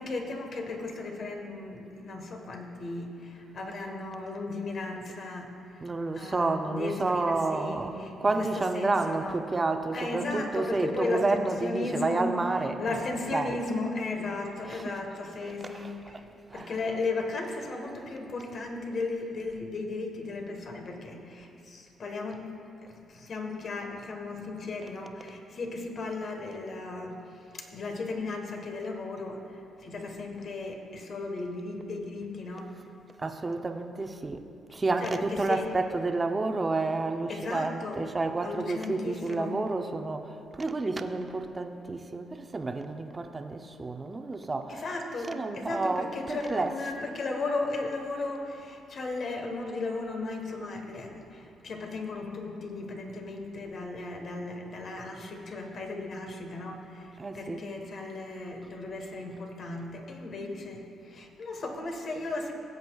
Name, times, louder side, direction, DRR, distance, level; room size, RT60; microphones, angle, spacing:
voice 1, 0.0-5.9 6.1-9.4 9.9-12.3 12.8-16.2 16.5-22.4 22.8-27.2 27.5-32.7 35.0-35.6 37.3-38.0 38.4-39.6 44.7-62.5, left 3 dB, 55° left, 2 dB, 1.3 m, -35 dB
voice 2, 5.8-13.6 14.6-16.2 16.5-16.8 33.2-46.9 57.2-57.6, right 3 dB, 25° right, 6 dB, 0.6 m, -30 dB
17.0 x 8.0 x 2.4 m, 2.7 s
cardioid pair, 90°, 0 cm